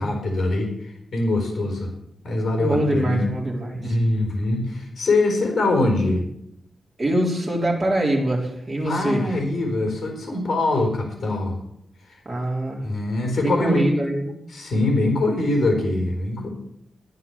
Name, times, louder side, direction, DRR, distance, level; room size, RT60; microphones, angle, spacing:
voice 1, 0.0-1.9 2.2-3.3 3.7-6.2 8.8-11.6 12.8-13.9 14.5-16.5, left 2 dB, 45° left, 2 dB, 4.0 m, -23 dB
voice 2, 2.6-4.0 7.0-9.3 12.3-12.8 13.4-14.4, right 1 dB, 25° right, -2 dB, 4.0 m, -24 dB
13.5 x 10.5 x 7.0 m, 0.77 s
wide cardioid pair, 155°, 0 cm